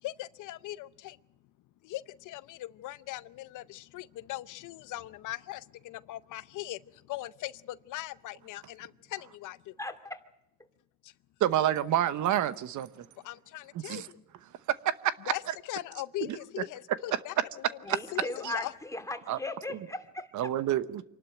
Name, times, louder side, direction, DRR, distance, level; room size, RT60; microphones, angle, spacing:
voice 1, 0.0-1.2 1.8-9.8 11.0-11.1 13.2-14.2 15.3-15.4 15.7-17.8 18.1-18.7, left 15 dB, 85° left, 0.7 m, -40 dB
voice 2, 9.8-10.3 17.8-20.3, left 2 dB, 10° left, 2.5 m, -37 dB
voice 3, 11.4-13.1 13.7-14.1 18.4-18.5 19.3-19.4 20.3-21.0, right 11 dB, 75° right, 1.0 m, -28 dB
26.0 x 12.0 x 9.0 m
cardioid pair, 90°, 30 cm